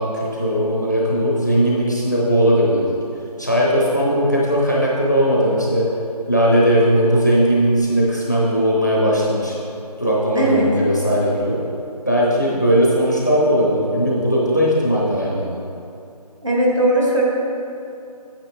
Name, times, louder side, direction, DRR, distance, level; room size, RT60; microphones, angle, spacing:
voice 1, 0.0-2.9 3.4-5.8 6.3-9.6 10.0-11.6 12.1-15.6, equal, 25° left, -5 dB, 0.9 m, -18 dB
voice 2, 10.3-10.7 16.4-17.2, right 1 dB, 50° right, -4 dB, 1.8 m, -18 dB
9.0 x 7.1 x 3.3 m, 2.5 s
figure-of-eight pair, 175°, 21 cm